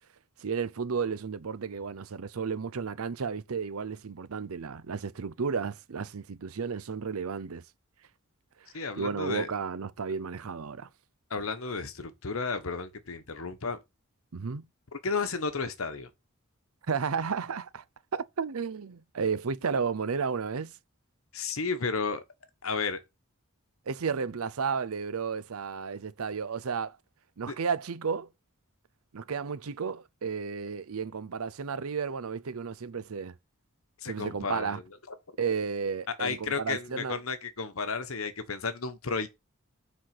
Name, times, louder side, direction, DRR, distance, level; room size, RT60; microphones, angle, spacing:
voice 1, 0.4-7.6 8.9-10.9 14.3-14.7 16.9-17.8 18.1-20.7 23.9-27.0 27.4-28.3 29.1-33.4 34.1-34.8 35.4-37.2, right 5 dB, 85° right, 0.6 m, -33 dB
voice 2, 8.7-9.5 11.3-13.8 14.9-16.1 21.3-22.2 22.6-23.0 27.5-27.6 34.0-34.8 35.1-35.2 36.2-39.3, left 4 dB, 75° left, 1.2 m, -33 dB
7.5 x 4.3 x 5.9 m
head